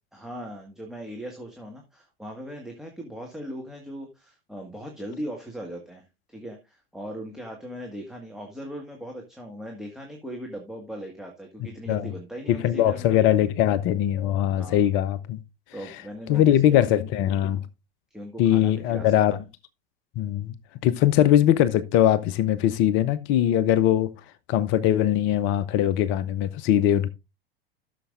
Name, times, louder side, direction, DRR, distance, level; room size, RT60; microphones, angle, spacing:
voice 1, 0.1-13.3 14.6-14.8 15.7-16.8 18.1-19.2, equal, ahead, 1.7 m, -39 dB
voice 2, 12.5-15.4 16.3-17.6 18.4-19.4 20.2-20.5 20.8-24.1 24.5-27.1, left 11 dB, 40° left, 0.7 m, -21 dB
14.0 x 6.7 x 2.5 m
figure-of-eight pair, 85°, 30 cm